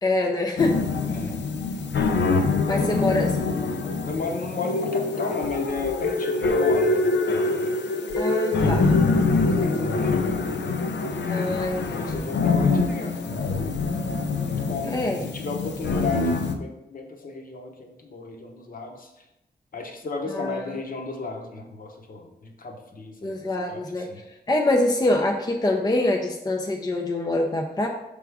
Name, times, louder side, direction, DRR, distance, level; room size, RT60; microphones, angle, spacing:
voice 1, 0.0-0.8 2.7-3.3 8.2-9.2 9.6-9.7 11.3-12.3 14.8-15.2 20.3-20.6 23.2-24.1 24.5-27.9, left 2 dB, 20° left, 2 dB, 0.4 m, -25 dB
sound 1, 0.6-16.5, left 3 dB, 90° left, 0.6 m, -24 dB
voice 2, 1.1-1.4 2.7-3.3 4.0-7.8 8.8-9.1 9.5-10.4 11.8-13.5 14.4-19.2 19.7-24.2, left 3 dB, 55° left, 3 dB, 0.9 m, -34 dB
6.1 x 3.5 x 4.7 m, 0.92 s
wide cardioid pair, 180°, 18 cm